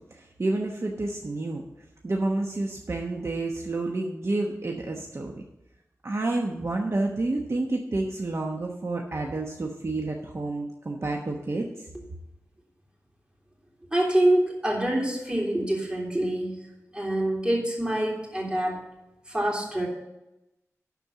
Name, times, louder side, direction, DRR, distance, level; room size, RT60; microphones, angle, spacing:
voice 1, 0.0-5.4 6.0-11.9, right 2 dB, 55° right, 1 dB, 1.1 m, -29 dB
voice 2, 13.9-16.7 16.9-18.8 19.3-19.9, right 1 dB, 15° right, -2 dB, 3.2 m, -25 dB
12.0 x 4.5 x 7.0 m, 0.93 s
wide cardioid pair, 80°, 6 cm